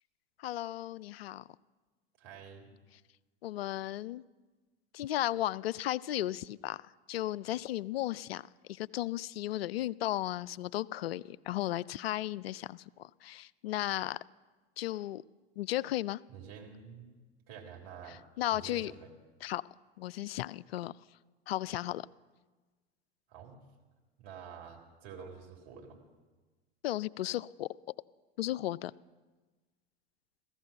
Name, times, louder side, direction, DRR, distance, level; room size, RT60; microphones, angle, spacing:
voice 1, 0.4-1.4 3.4-4.2 4.9-6.8 7.1-8.4 8.7-14.2 14.8-15.2 15.6-16.2 18.4-18.9 19.4-19.6 20.0-20.9 21.5-22.0 26.8-27.7 28.4-28.9, left 14 dB, 70° left, 19 dB, 0.5 m, -35 dB
voice 2, 2.2-2.7 16.3-17.2 17.5-18.2 18.5-19.1 23.3-23.6 24.2-26.0, right 7 dB, 50° right, 1 dB, 3.6 m, -48 dB
15.5 x 15.0 x 5.8 m, 1.3 s
figure-of-eight pair, 90°, 32 cm